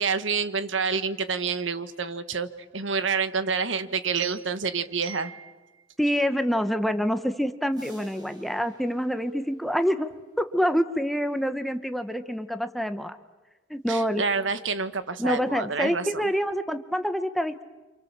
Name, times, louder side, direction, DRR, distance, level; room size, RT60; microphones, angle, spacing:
voice 1, 0.0-2.5 2.7-5.5 13.9-16.3, right 5 dB, 70° right, 11 dB, 1.4 m, -28 dB
voice 2, 6.0-10.1 10.4-13.2 13.7-14.2 15.2-17.6, equal, ahead, 9 dB, 1.0 m, -26 dB
sound 1, 7.7-10.5, right 1 dB, 20° right, 7.2 m, -55 dB
29.0 x 27.0 x 7.4 m, 1.2 s
head